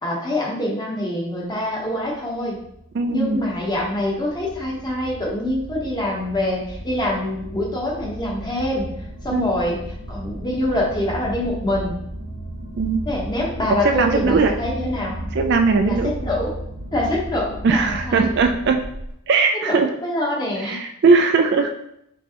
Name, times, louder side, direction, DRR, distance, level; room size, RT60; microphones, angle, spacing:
voice 1, 0.0-2.6 3.1-8.9 9.2-9.8 10.1-12.0 13.0-15.1 15.8-16.5 16.9-18.2 19.5-19.8 20.0-20.8, left 1 dB, 20° left, -3 dB, 1.0 m, -25 dB
sound 1, 1.6-19.1, right 1 dB, 80° right, 1.2 m, -34 dB
voice 2, 2.9-3.4 9.3-9.5 12.8-13.1 13.7-14.6 15.3-16.1 17.6-18.8 19.3-19.9 20.6-21.7, right 4 dB, 50° right, 5 dB, 0.3 m, -19 dB
5.2 x 3.2 x 2.9 m, 0.75 s
head